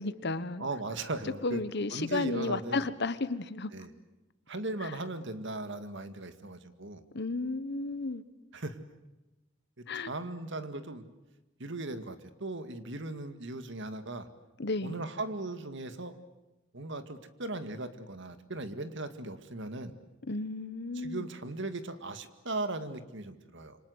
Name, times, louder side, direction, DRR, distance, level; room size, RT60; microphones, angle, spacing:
voice 1, 0.0-0.6 1.4-3.7 4.8-4.9 7.1-8.2 9.9-10.1 14.6-15.0 20.3-21.3, left 3 dB, 55° left, 1.3 m, -33 dB
voice 2, 0.6-1.6 1.9-2.8 3.7-3.9 4.5-7.0 8.5-8.8 9.8-11.0 11.6-14.3 14.8-16.2 16.7-19.9 20.9-23.8, right 2 dB, 65° right, 2.1 m, -38 dB
27.5 x 25.5 x 8.1 m
head